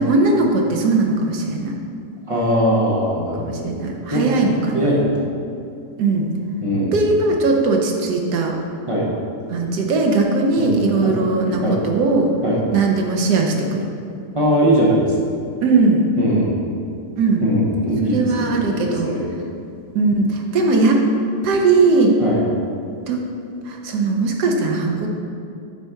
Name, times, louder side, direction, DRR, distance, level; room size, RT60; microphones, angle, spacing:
voice 1, 0.0-1.7 3.4-4.8 6.0-6.3 6.9-8.5 9.5-12.3 12.7-13.8 15.6-16.0 17.2-17.5 18.1-19.1 19.9-21.0 21.4-22.2 23.1-23.2 23.7-25.1, right 3 dB, 70° right, 1 dB, 1.3 m, -19 dB
voice 2, 2.3-3.7 4.1-5.3 6.6-7.0 8.9-9.1 10.6-10.7 11.0-11.2 11.6-11.8 12.4-12.6 14.3-15.2 16.2-16.6 17.4-19.3 22.2-22.4, equal, 25° right, -4 dB, 0.8 m, -20 dB
8.7 x 4.2 x 3.6 m, 2.5 s
omnidirectional pair, 1.8 m